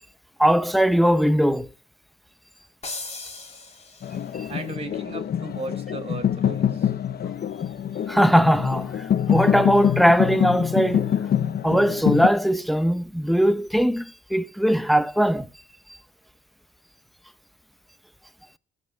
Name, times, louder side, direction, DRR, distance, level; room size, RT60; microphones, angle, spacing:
voice 1, 0.4-1.7 4.4-4.5 8.1-8.9 9.3-11.1 11.6-14.0 14.3-15.5, equal, ahead, 0.7 m, -20 dB
sound 1, 2.8-4.5, left 3 dB, 35° left, 3.0 m, -37 dB
sound 2, 4.0-12.3, left 9 dB, 55° left, 0.7 m, -25 dB
voice 2, 4.5-6.9, right 2 dB, 30° right, 3.9 m, -35 dB
14.5 x 5.5 x 9.2 m
cardioid pair, 105°, 19 cm